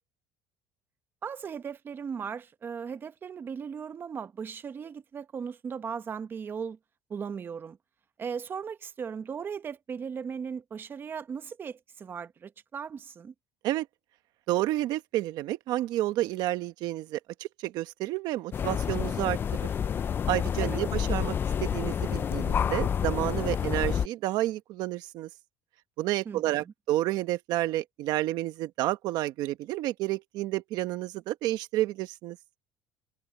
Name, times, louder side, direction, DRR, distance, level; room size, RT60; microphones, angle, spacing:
voice 1, 1.2-6.8 7.1-7.8 8.2-13.3 20.6-20.8 26.2-26.6, right 6 dB, 30° right, 1.0 m, -37 dB
voice 2, 14.5-19.4 20.3-21.3 21.6-25.3 26.0-32.4, right 15 dB, 65° right, 1.2 m, -30 dB
sound 1, 18.5-24.1, left 8 dB, 30° left, 0.5 m, -29 dB
cardioid pair, 140°, 7 cm